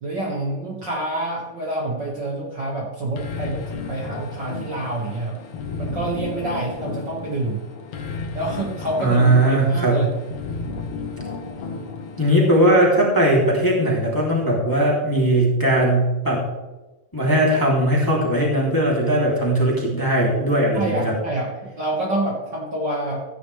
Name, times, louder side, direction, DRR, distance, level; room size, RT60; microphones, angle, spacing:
voice 1, 0.0-5.3 5.8-7.6 8.3-10.2 20.7-23.2, right 2 dB, 40° right, -3 dB, 2.1 m, -27 dB
sound 1, 3.2-12.7, left 4 dB, 90° left, 2.9 m, -33 dB
voice 2, 9.0-10.0 12.2-16.5 17.1-21.1, right 1 dB, 5° left, -4 dB, 2.6 m, -19 dB
15.5 x 9.9 x 3.3 m, 1.1 s
omnidirectional pair, 3.3 m